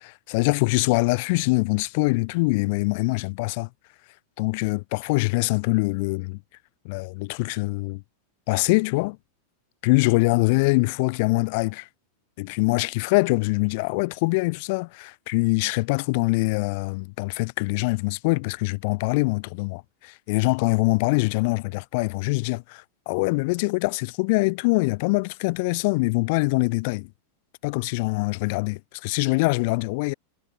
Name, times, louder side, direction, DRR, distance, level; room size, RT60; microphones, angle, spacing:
voice 1, 0.3-3.7 4.4-6.4 6.8-8.0 8.5-9.2 9.8-11.9 12.4-27.1 27.6-30.1, left 27 dB, 50° left, 6.9 m, -24 dB
figure-of-eight pair, 90°, 0 cm